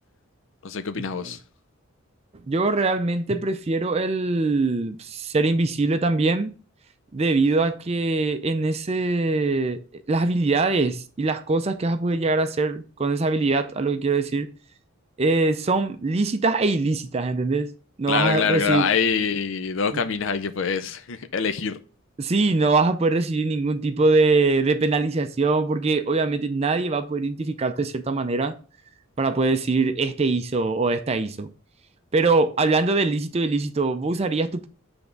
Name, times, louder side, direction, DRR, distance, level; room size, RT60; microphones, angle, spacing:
voice 1, 0.6-1.4 18.1-21.8, left 6 dB, 65° left, 0.5 m, -25 dB
voice 2, 2.5-6.5 7.1-14.5 15.2-17.7 18.0-18.9 22.2-28.5 29.2-31.5 32.1-34.7, right 3 dB, 30° right, 0.4 m, -23 dB
8.0 x 3.5 x 5.1 m
head